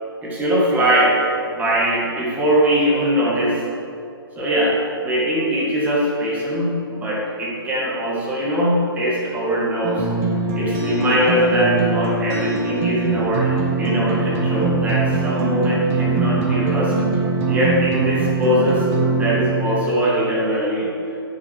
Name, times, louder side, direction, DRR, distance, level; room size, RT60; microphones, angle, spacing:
voice 1, 0.2-1.2 1.5-3.6 4.4-10.1 10.6-16.9 17.5-20.9, right 1 dB, 10° right, -5 dB, 1.8 m, -21 dB
sound 1, 9.8-19.8, right 3 dB, 30° right, 1.4 m, -22 dB
8.0 x 6.2 x 6.3 m, 2.7 s
figure-of-eight pair, 135°, 13 cm